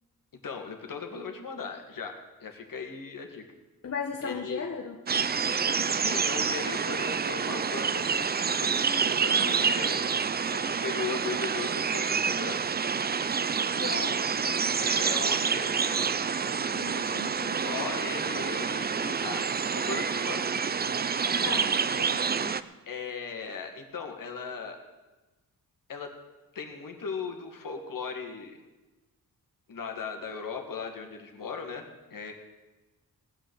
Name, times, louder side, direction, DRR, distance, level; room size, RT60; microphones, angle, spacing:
voice 1, 0.4-3.4 4.2-4.6 5.9-10.1 10.5-12.6 14.8-16.2 17.6-19.5 19.7-20.5 22.9-24.8 25.9-26.1 26.5-28.6 29.7-32.3, left 5 dB, 65° left, 3 dB, 2.2 m, -38 dB
voice 2, 3.8-5.0 13.7-14.2 16.6-18.1 21.3-22.6, left 5 dB, 45° left, 1 dB, 1.2 m, -37 dB
sound 1, 5.1-22.6, right 6 dB, 25° right, 0.5 m, -28 dB
18.5 x 6.7 x 7.3 m, 1.1 s
cardioid pair, 90°, 36 cm